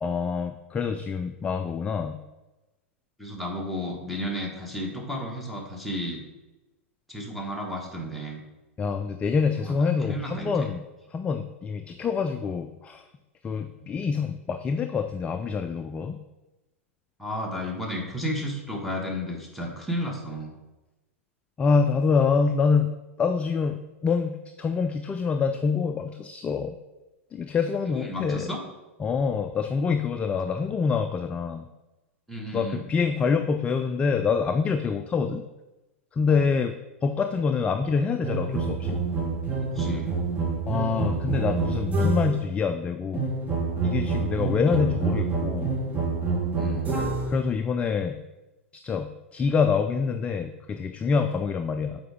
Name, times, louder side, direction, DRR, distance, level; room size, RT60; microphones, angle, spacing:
voice 1, 0.0-2.2 8.8-10.8 11.1-13.0 13.4-16.2 21.6-22.9 23.2-26.7 27.3-28.5 29.0-31.7 32.5-35.4 36.1-36.7 37.0-39.0 40.7-43.3 43.8-45.7 47.3-48.2 48.8-52.0, left 5 dB, 15° left, 8 dB, 0.3 m, -26 dB
voice 2, 3.2-6.2 7.1-8.4 9.6-10.7 13.8-13.9 17.2-20.6 27.8-28.6 32.3-32.9 36.3-36.6 39.7-40.2 44.7-44.8 46.6-47.0, equal, ahead, -2 dB, 1.4 m, -33 dB
sound 1, 38.2-42.5 43.1-47.4, right 4 dB, 20° right, 1.6 m, -27 dB
7.5 x 4.6 x 3.6 m, 1.0 s
figure-of-eight pair, 100°, 7 cm